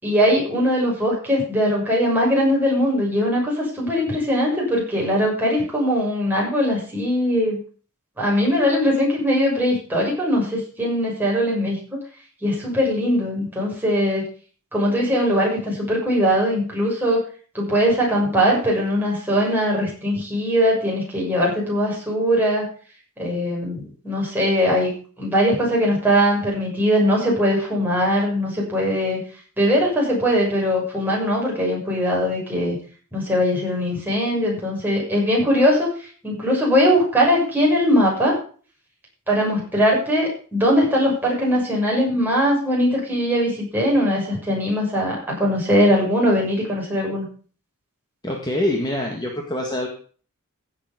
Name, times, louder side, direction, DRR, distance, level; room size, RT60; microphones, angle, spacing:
voice 1, 0.0-7.6 8.2-11.8 12.4-14.3 14.7-17.2 17.5-22.7 23.2-24.9 25.2-29.2 29.6-32.8 33.1-35.9 36.2-38.4 39.3-47.2, equal, 10° right, -3 dB, 6.6 m, -20 dB
voice 2, 48.2-49.9, left 1 dB, 20° left, 0 dB, 2.0 m, -25 dB
16.0 x 7.5 x 5.2 m, 0.41 s
head